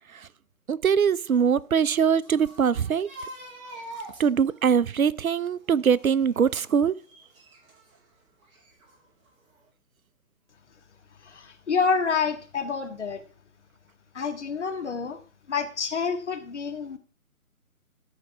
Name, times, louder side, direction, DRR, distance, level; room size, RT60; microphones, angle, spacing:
voice 1, 0.7-3.1 4.2-7.0, right 7 dB, 70° right, 0.7 m, -22 dB
sound 1, 1.1-8.0 8.4-9.3 9.5-9.7, right 1 dB, 20° right, 2.5 m, -46 dB
voice 2, 11.2-13.2 14.1-15.2 15.5-17.0, left 5 dB, 50° left, 1.8 m, -28 dB
13.0 x 5.1 x 5.8 m
figure-of-eight pair, 150°, 44 cm